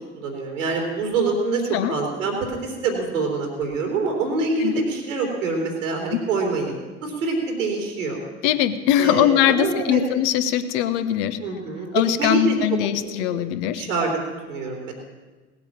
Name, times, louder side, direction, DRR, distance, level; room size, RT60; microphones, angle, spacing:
voice 1, 0.1-8.2 9.0-10.0 11.4-12.5 13.0-13.4 13.8-14.2 14.5-14.9, right 3 dB, 85° right, 1 dB, 3.2 m, -25 dB
voice 2, 8.4-11.4 11.9-13.8, left 11 dB, 65° left, 11 dB, 1.0 m, -21 dB
17.5 x 8.1 x 7.2 m, 1.3 s
figure-of-eight pair, 55°, 37 cm